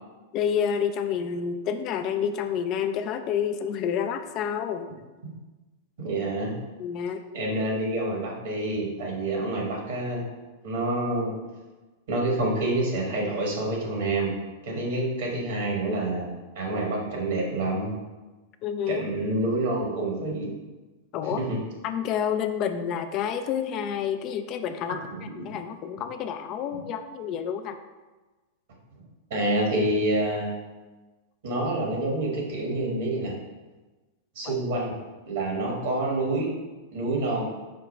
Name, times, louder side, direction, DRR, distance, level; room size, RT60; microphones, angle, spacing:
voice 1, 0.3-4.9 6.8-7.2 18.6-19.0 21.1-21.4 21.8-25.0 25.4-27.8 34.4-34.5, left 8 dB, 40° left, 8 dB, 0.3 m, -29 dB
voice 2, 6.0-6.5 7.3-10.2 10.6-11.3 12.1-14.3 14.6-18.0 18.9-20.6 21.4-21.6 25.1-25.2 29.3-30.7 31.4-33.3 34.3-34.9 35.3-36.5 36.9-37.5, right 2 dB, 60° right, -2 dB, 1.3 m, -27 dB
5.1 x 2.2 x 4.2 m, 1.2 s
figure-of-eight pair, 95°, 0 cm